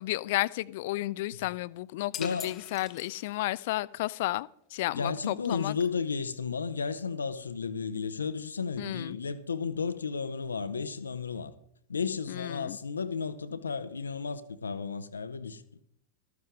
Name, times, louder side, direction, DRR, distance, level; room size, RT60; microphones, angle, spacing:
voice 1, 0.0-5.8 8.8-9.2 12.3-12.8, left 17 dB, 50° left, 0.4 m, -32 dB
sound 1, 2.1-3.6, left 10 dB, 30° left, 0.9 m, -42 dB
voice 2, 2.2-2.6 4.9-11.5 11.9-15.8, left 5 dB, 75° left, 0.8 m, -33 dB
14.0 x 13.5 x 3.6 m
figure-of-eight pair, 90°, 0 cm